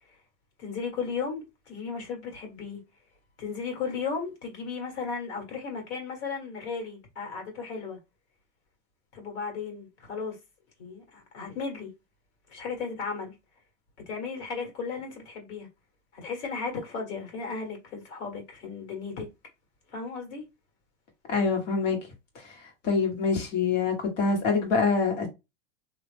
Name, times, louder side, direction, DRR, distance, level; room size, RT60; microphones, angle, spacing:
voice 1, 0.6-2.8 3.4-8.0 9.1-10.4 10.8-11.9 12.5-13.3 14.1-15.7 16.1-19.3 19.9-20.4, left 5 dB, 65° left, 1.7 m, -35 dB
voice 2, 21.3-22.0 22.8-25.3, left 4 dB, 85° left, 1.5 m, -25 dB
2.8 x 2.1 x 3.3 m
supercardioid pair, 130°, 36 cm